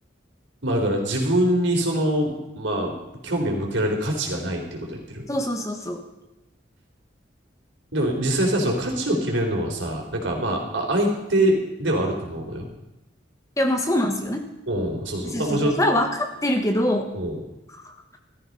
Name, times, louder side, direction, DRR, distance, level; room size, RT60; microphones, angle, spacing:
voice 1, 0.6-3.0 3.2-5.2 7.9-12.7 14.7-15.7 17.1-17.4, right 1 dB, 80° right, 1 dB, 3.9 m, -24 dB
voice 2, 5.3-6.0 13.6-14.4 15.3-17.1 17.8-17.9, left 1 dB, 15° left, 4 dB, 1.3 m, -24 dB
15.0 x 13.5 x 5.5 m, 0.95 s
head